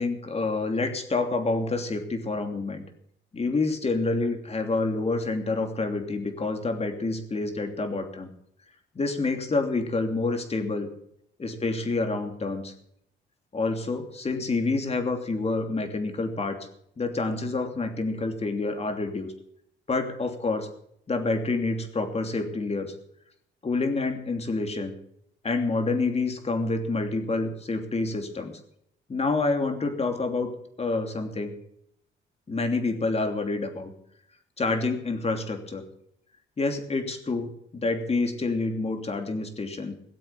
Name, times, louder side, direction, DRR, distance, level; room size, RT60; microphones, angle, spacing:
voice 1, 0.0-2.8 3.3-8.3 8.9-10.9 11.4-12.7 13.5-16.6 17.0-19.3 19.9-20.7 21.1-22.9 23.6-24.9 25.4-28.6 29.1-30.5 30.8-31.6 32.5-33.9 34.6-35.8 36.6-39.9, left 3 dB, 30° left, 6 dB, 3.0 m, -28 dB
18.0 x 7.8 x 8.7 m, 0.72 s
cardioid pair, 90°, 20 cm